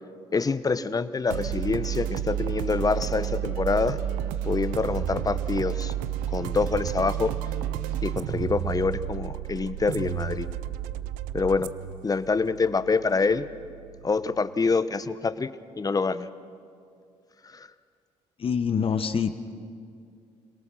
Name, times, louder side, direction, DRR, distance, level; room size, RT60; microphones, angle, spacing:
voice 1, 0.3-4.0 4.4-5.9 6.3-7.3 8.0-10.5 11.3-11.7 12.0-13.4 14.0-15.5 15.8-16.3 17.4-17.7, left 4 dB, 30° left, 13 dB, 1.0 m, -26 dB
sound 1, 1.3-14.7, right 11 dB, 90° right, 0.6 m, -32 dB
voice 2, 18.4-19.5, left 6 dB, 45° left, 9 dB, 1.3 m, -26 dB
26.5 x 18.5 x 6.4 m, 2.3 s
supercardioid pair, 70°, 13 cm